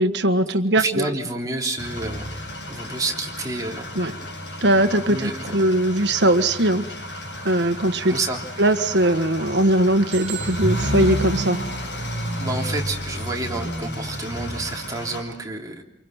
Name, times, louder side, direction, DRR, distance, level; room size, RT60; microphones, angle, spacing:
voice 1, 0.0-1.1 3.9-4.1 4.6-6.9 7.4-8.2 8.6-11.6, right 1 dB, 70° right, 8 dB, 1.6 m, -20 dB
voice 2, 0.7-2.4 2.7-4.0 5.1-5.5 8.1-8.4 12.4-15.8, right 2 dB, 20° right, 0 dB, 3.3 m, -29 dB
sound 1, 1.8-15.2, equal, 70° left, 7.7 m, -31 dB
sound 2, 10.1-12.0, right 10 dB, 35° right, 3.9 m, -38 dB
29.0 x 24.0 x 5.9 m, 0.82 s
head